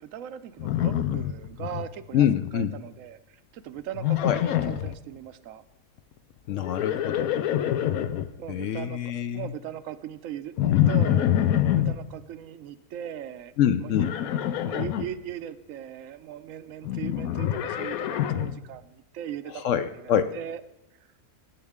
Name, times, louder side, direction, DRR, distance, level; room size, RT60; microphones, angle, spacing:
voice 1, 0.0-2.3 2.5-5.6 8.4-9.0 9.3-10.5 10.9-14.0 14.6-20.6, right 10 dB, 75° right, 13 dB, 0.9 m, -39 dB
Livestock farm animals working animals, 0.6-1.9 2.1-2.7 4.0-4.9 6.5-8.3 10.6-12.0 13.9-15.1 16.8-18.6, left 11 dB, 90° left, 1.1 m, -25 dB
voice 2, 2.1-2.7 4.2-4.4 6.5-7.3 8.5-9.5 13.6-14.1 19.5-20.4, left 9 dB, 70° left, 11 dB, 0.8 m, -25 dB
17.5 x 8.3 x 3.6 m, 0.90 s
omnidirectional pair, 1.5 m